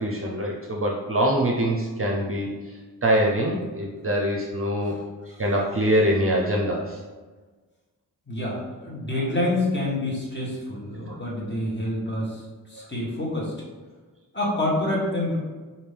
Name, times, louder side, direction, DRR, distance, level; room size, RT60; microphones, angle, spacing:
voice 1, 0.0-2.5 3.0-4.9 5.3-7.0 11.0-11.2 12.8-12.9, equal, 35° right, -1 dB, 0.6 m, -24 dB
voice 2, 8.3-12.4 12.7-13.5 14.3-15.4, left 1 dB, 30° left, -5 dB, 1.3 m, -27 dB
5.1 x 2.7 x 3.3 m, 1.3 s
wide cardioid pair, 110°, 38 cm